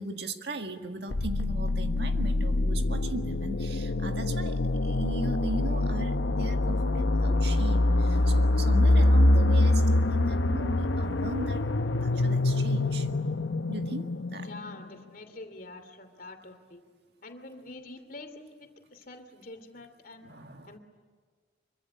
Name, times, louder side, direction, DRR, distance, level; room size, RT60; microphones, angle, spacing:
voice 1, 0.0-11.7 12.0-13.1 13.7-14.5 20.2-20.8, right 2 dB, 60° right, 5 dB, 1.8 m, -38 dB
sound 1, 1.1-14.9, left 2 dB, 90° left, 0.9 m, -25 dB
voice 2, 14.4-16.8 17.2-20.3 20.7-20.8, left 2 dB, 50° left, 8 dB, 2.8 m, -46 dB
25.0 x 24.0 x 9.7 m, 1.5 s
head